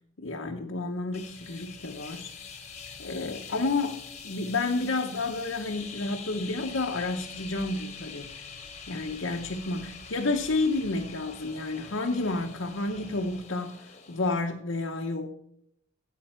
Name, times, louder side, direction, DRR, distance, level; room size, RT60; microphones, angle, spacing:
voice 1, 0.2-2.3 3.0-8.3 8.9-15.3, left 3 dB, 65° left, 1 dB, 0.9 m, -30 dB
sound 1, 1.1-14.5, left 6 dB, 30° left, 1.2 m, -45 dB
Dribbling Water, 1.1-13.4, left 1 dB, 55° right, 4.6 m, -53 dB
14.0 x 8.4 x 4.4 m, 0.73 s
head